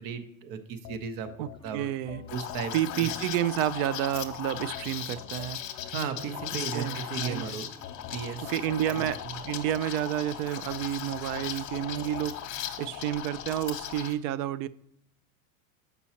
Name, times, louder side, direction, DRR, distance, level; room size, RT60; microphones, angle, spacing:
voice 1, 0.0-1.3 1.6-1.9 2.3-3.1 5.9-7.7 8.1-8.5 8.8-9.3, right 6 dB, 50° right, 10 dB, 0.9 m, -36 dB
sound 1, 0.8-3.6 4.1-6.9 7.4-10.2 10.7-12.3, left 11 dB, 70° left, 0.6 m, -46 dB
voice 2, 1.4-2.2 2.7-5.6 6.7-7.5 8.4-14.7, right 12 dB, 70° right, 17 dB, 0.5 m, -30 dB
sound 2, 1.6-10.9, left 4 dB, 10° left, 0.6 m, -53 dB
Liquid, 2.3-14.1, left 10 dB, 45° left, 1.0 m, -38 dB
7.0 x 5.4 x 2.9 m, 0.75 s
supercardioid pair, 100°, 43 cm